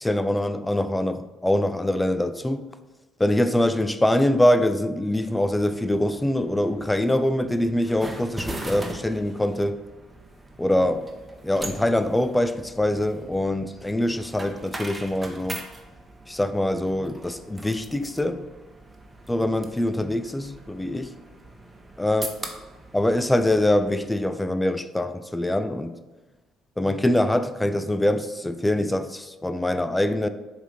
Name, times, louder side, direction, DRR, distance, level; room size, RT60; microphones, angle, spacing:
voice 1, 0.0-2.7 3.2-9.8 10.6-11.1 11.4-15.6 16.3-18.5 19.3-21.1 22.0-22.3 22.9-26.0 26.8-30.3, left 1 dB, 10° left, 0.5 m, -24 dB
sound 1, 5.2-24.2, right 2 dB, 15° right, 1.0 m, -41 dB
7.0 x 3.5 x 4.3 m
hypercardioid pair, 50°, 0 cm